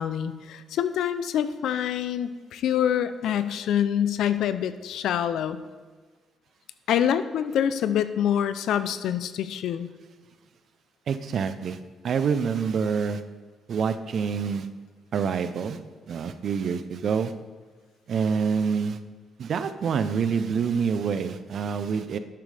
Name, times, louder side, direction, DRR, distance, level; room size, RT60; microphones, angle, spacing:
voice 1, 0.0-5.6 6.9-9.9, left 9 dB, 80° left, 12 dB, 0.5 m, -26 dB
voice 2, 11.1-11.8 12.0-13.2 13.7-14.7 15.1-15.8 16.1-17.3 18.1-19.0 19.4-22.2, right 6 dB, 60° right, 11 dB, 0.6 m, -26 dB
11.5 x 8.9 x 3.4 m, 1.4 s
cardioid pair, 90°, 0 cm